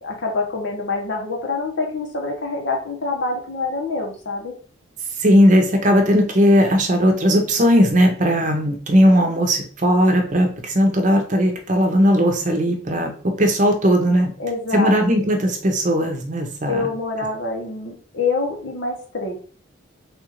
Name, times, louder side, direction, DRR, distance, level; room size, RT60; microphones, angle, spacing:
voice 1, 0.0-4.5 14.4-15.0 16.7-19.4, left 3 dB, 65° left, 0 dB, 0.9 m, -26 dB
voice 2, 5.2-13.1 13.4-14.3 14.7-16.9, equal, 40° right, 3 dB, 0.7 m, -17 dB
3.5 x 2.5 x 3.0 m, 0.43 s
head